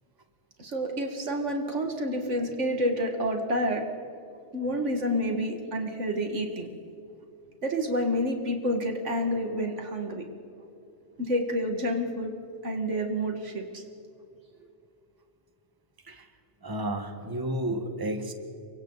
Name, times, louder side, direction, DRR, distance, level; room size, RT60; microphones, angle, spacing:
voice 1, 0.6-3.9 4.5-6.7 7.6-10.2 11.2-12.3 12.6-13.8, equal, 85° right, 3 dB, 2.3 m, -29 dB
voice 2, 16.6-18.3, right 1 dB, 20° right, 6 dB, 1.4 m, -31 dB
29.0 x 24.0 x 4.1 m, 2.6 s
omnidirectional pair, 1.2 m